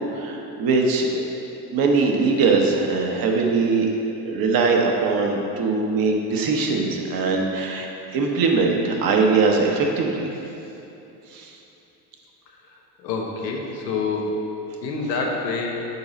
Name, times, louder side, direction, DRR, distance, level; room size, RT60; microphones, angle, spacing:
voice 1, 0.1-1.2 1.7-3.9 4.2-7.9 8.1-10.3 11.3-11.5, right 4 dB, 45° right, 1 dB, 1.0 m, -21 dB
voice 2, 12.5-14.4 14.8-15.9, left 3 dB, 80° left, 0 dB, 1.0 m, -27 dB
6.9 x 4.8 x 3.9 m, 2.9 s
hypercardioid pair, 75°, 49 cm